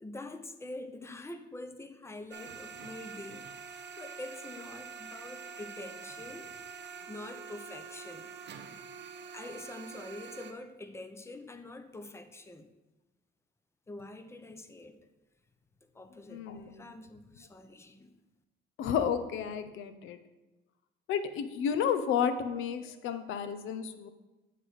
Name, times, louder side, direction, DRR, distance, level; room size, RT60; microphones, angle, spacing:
voice 1, 0.0-6.6 7.1-8.3 9.3-12.7 13.9-15.0 15.8-18.1, left 2 dB, 15° left, 0.6 m, -45 dB
sound 1, 2.3-10.5, right 6 dB, 60° right, 0.8 m, -46 dB
voice 2, 16.3-16.9 18.8-20.2 21.1-24.1, left 7 dB, 90° left, 0.6 m, -32 dB
9.6 x 3.3 x 6.3 m
cardioid pair, 90°, 20 cm